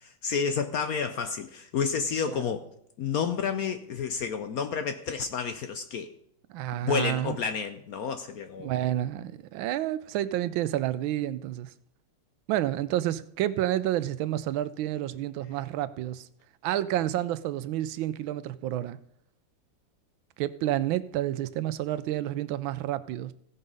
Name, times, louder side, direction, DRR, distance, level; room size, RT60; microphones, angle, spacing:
voice 1, 0.0-2.7 3.0-6.1 6.8-8.7, left 6 dB, 65° left, 0.9 m, -30 dB
voice 2, 6.5-7.4 8.6-11.7 12.5-16.3 16.6-19.0 20.4-23.3, right 13 dB, 85° right, 1.4 m, -29 dB
16.0 x 5.5 x 5.3 m
omnidirectional pair, 2.1 m